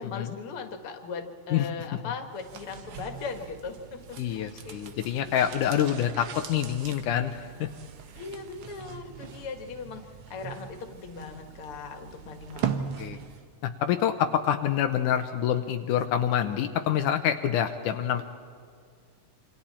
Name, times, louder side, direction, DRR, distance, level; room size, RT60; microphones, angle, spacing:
voice 1, 0.0-5.3 8.1-12.9, left 5 dB, 50° left, 5 dB, 2.5 m, -39 dB
sound 1, 2.3-13.5 13.8-13.9, right 8 dB, 60° right, 1.7 m, -40 dB
voice 2, 4.2-7.7 13.0-13.2 13.6-18.2, left 10 dB, 80° left, 6 dB, 2.3 m, -26 dB
28.0 x 26.0 x 4.4 m, 2.2 s
omnidirectional pair, 3.6 m